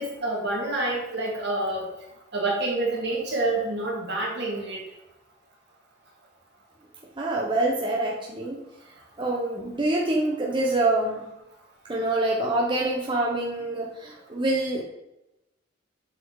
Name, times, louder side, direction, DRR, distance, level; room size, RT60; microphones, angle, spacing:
voice 1, 0.0-1.9 2.3-4.8, right 2 dB, 65° right, -2 dB, 2.1 m, -27 dB
voice 2, 7.2-8.6 9.2-11.3 11.9-14.8, right 2 dB, 25° right, -2 dB, 0.9 m, -26 dB
7.7 x 4.3 x 3.9 m, 0.92 s
head